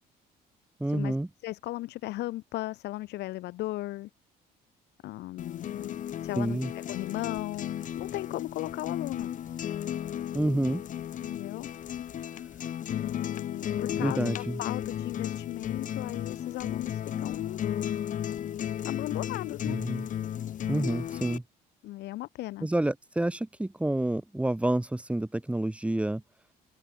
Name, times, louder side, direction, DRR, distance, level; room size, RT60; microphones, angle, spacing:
voice 1, 0.8-1.3 6.4-6.7 10.3-10.8 14.0-14.6 19.7-20.1 20.7-21.4 22.6-26.2, right 1 dB, 5° right, 1.9 m, -28 dB
voice 2, 1.4-4.1 5.0-6.6 6.9-9.3 11.2-11.7 12.9-17.6 18.8-19.8 21.8-22.7, left 17 dB, 80° left, 4.5 m, -36 dB
sound 1, 5.4-21.4, left 10 dB, 50° left, 1.1 m, -34 dB
cardioid pair, 110°, 17 cm